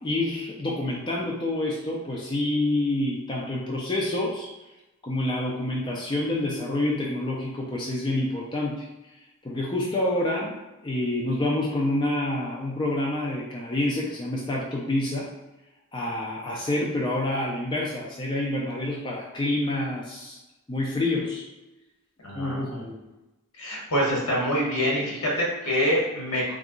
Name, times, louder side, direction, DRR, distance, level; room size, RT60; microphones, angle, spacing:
voice 1, 0.0-4.5 5.0-8.9 9.4-10.6 10.8-15.3 15.9-20.4 20.7-21.5 22.3-23.1, left 1 dB, 20° left, -3 dB, 0.4 m, -27 dB
voice 2, 22.2-22.8 23.5-26.4, equal, 80° left, -3 dB, 1.2 m, -25 dB
2.8 x 2.4 x 3.7 m, 1.0 s
head